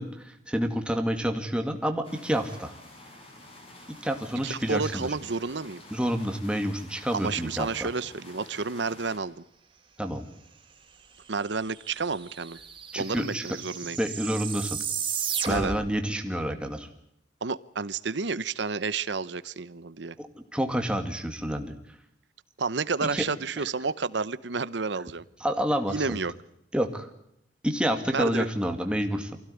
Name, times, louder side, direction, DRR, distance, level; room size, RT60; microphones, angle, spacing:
voice 1, 0.0-2.7 4.0-5.1 5.9-7.9 10.0-10.3 12.9-13.4 14.0-14.8 15.5-16.9 20.2-21.8 23.1-23.2 23.6-23.7 25.4-26.2 26.7-27.1 27.6-29.4, equal, 5° right, 5 dB, 2.2 m, -28 dB
sound 1, 2.0-9.2, left 1 dB, 30° left, 5.5 m, -49 dB
voice 2, 4.4-5.8 7.1-9.4 11.3-12.6 13.0-14.0 15.5-15.8 17.4-20.2 22.6-25.2 25.9-26.3 28.1-28.5, right 4 dB, 75° right, 17 dB, 0.9 m, -30 dB
sound 2, 11.4-11.5 11.7-15.9, right 7 dB, 25° right, 3.6 m, -34 dB
24.0 x 16.5 x 9.9 m, 0.77 s
head